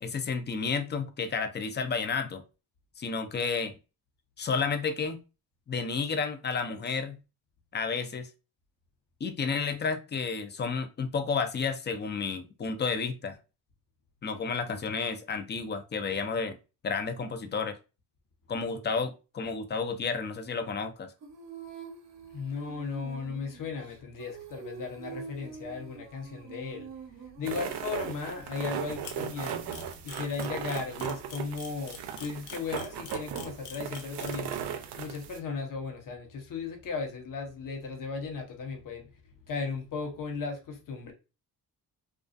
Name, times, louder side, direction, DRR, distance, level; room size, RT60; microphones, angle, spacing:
voice 1, 0.0-2.4 3.0-3.8 4.4-5.2 5.7-7.2 7.7-8.3 9.2-13.4 14.2-16.6 16.8-17.8 18.5-21.1, left 5 dB, 30° left, 0.4 m, -31 dB
Female singing, 21.2-28.9, right 5 dB, 45° right, 0.7 m, -46 dB
voice 2, 22.3-26.9 27.4-29.6 30.0-34.5 35.0-39.1 39.5-41.1, left 5 dB, 55° left, 0.8 m, -36 dB
sound 1, 27.4-35.4, right 9 dB, 80° right, 0.5 m, -37 dB
Camera, 29.0-34.5, left 7 dB, 85° left, 0.7 m, -44 dB
2.3 x 2.3 x 2.5 m
cardioid pair, 75°, 39 cm